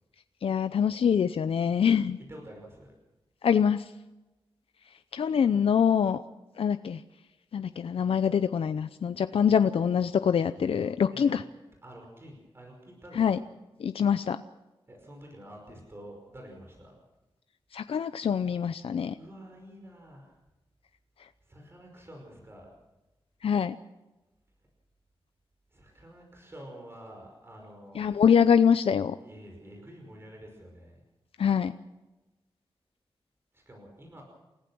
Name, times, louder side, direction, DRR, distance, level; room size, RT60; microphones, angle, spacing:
voice 1, 0.4-2.2 3.4-3.9 5.1-6.2 6.6-7.0 7.5-11.4 13.2-13.4 13.8-14.4 17.7-19.1 23.4-23.8 28.0-29.2 31.4-31.7, left 7 dB, 75° left, 10 dB, 0.6 m, -24 dB
voice 2, 2.3-2.9 11.1-11.3 11.8-13.5 14.9-17.0 19.1-20.4 21.4-22.7 25.7-28.1 29.2-31.0 33.5-34.2, right 1 dB, 25° right, 1 dB, 5.4 m, -48 dB
29.0 x 15.5 x 6.2 m, 1.0 s
wide cardioid pair, 160°, 10 cm